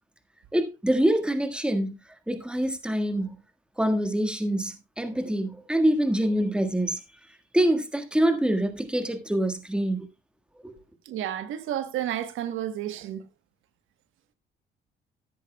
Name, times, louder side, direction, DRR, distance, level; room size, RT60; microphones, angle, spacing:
voice 1, 0.5-1.9 2.3-3.3 3.8-7.0 7.5-10.1 10.6-10.7, right 1 dB, 5° right, 1.6 m, -25 dB
voice 2, 11.0-13.3, right 11 dB, 90° right, 1.2 m, -31 dB
14.0 x 10.5 x 2.2 m
cardioid pair, 90°, 20 cm